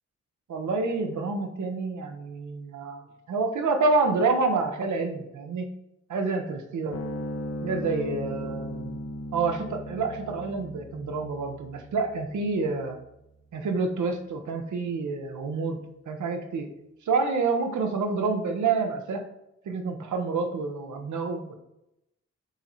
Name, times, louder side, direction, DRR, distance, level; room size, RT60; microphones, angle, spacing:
voice 1, 0.5-3.0 3.3-5.7 6.1-7.0 7.6-9.0 9.3-13.0 13.5-16.7 17.1-19.2 19.7-21.5, right 4 dB, 85° right, 4 dB, 0.9 m, -28 dB
sound 1, 6.9-13.6, equal, 60° left, 0.9 m, -37 dB
8.1 x 3.1 x 4.0 m, 0.85 s
cardioid pair, 90°, 29 cm